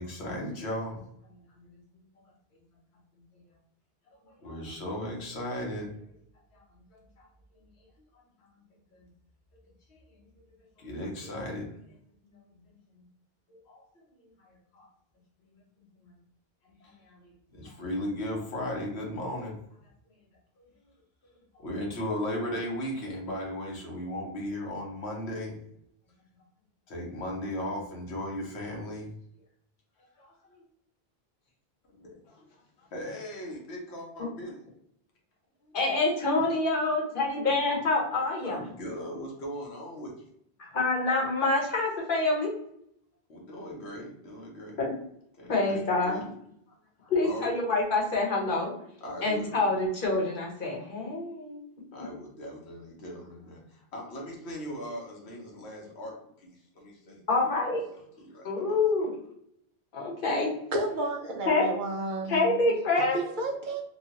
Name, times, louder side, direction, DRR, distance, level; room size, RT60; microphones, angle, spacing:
voice 1, 0.0-2.6 3.1-3.6 4.1-6.1 6.5-8.6 8.9-9.1 9.5-13.1 13.5-14.9 15.4-16.2 16.6-20.2 20.6-20.7 21.3-25.6 26.1-26.2 26.9-29.1 30.0-30.6 32.0-32.1 32.9-34.6 35.6-35.8 38.4-40.1 43.3-44.8 45.4-46.3 46.7-46.8 47.0-47.6 49.0-49.6 51.9-57.5 57.9-59.1, left 1 dB, 85° left, -1 dB, 1.2 m, -38 dB
voice 2, 35.7-38.6 40.6-42.5 44.8-44.9 45.5-46.2 47.1-48.7 49.2-51.6 57.3-57.8 58.4-59.1 59.9-60.5 61.5-61.6 62.3-63.2, left 2 dB, 55° left, -1 dB, 1.0 m, -26 dB
voice 3, 60.7-62.6 63.4-63.8, right 1 dB, 60° right, 1 dB, 0.6 m, -31 dB
2.9 x 2.3 x 2.8 m, 0.73 s
omnidirectional pair, 1.1 m